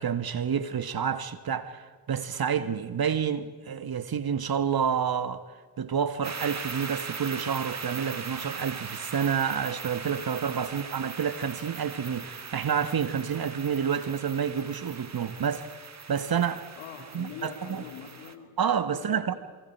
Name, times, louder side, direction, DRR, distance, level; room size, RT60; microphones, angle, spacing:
voice 1, 0.0-5.4 5.8-15.7 16.1-16.7 17.1-17.8 18.6-19.4, right 7 dB, 50° right, 1.7 m, -29 dB
sound 1, 6.2-18.3, right 5 dB, 35° right, 2.0 m, -40 dB
voice 2, 16.8-18.6 18.9-19.4, left 8 dB, 85° left, 3.3 m, -43 dB
29.0 x 23.5 x 4.7 m
hypercardioid pair, 40°, 47 cm